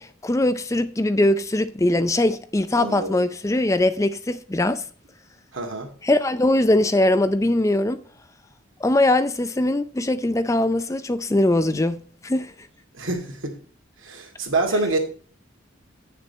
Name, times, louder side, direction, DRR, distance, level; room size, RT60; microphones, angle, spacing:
voice 1, 0.0-4.8 6.0-8.0 8.8-12.5, left 1 dB, 15° left, 0.5 m, -21 dB
voice 2, 2.7-3.2 5.5-5.9 12.9-13.6 14.0-15.0, right 2 dB, 80° right, 2.3 m, -26 dB
8.8 x 6.7 x 4.1 m
head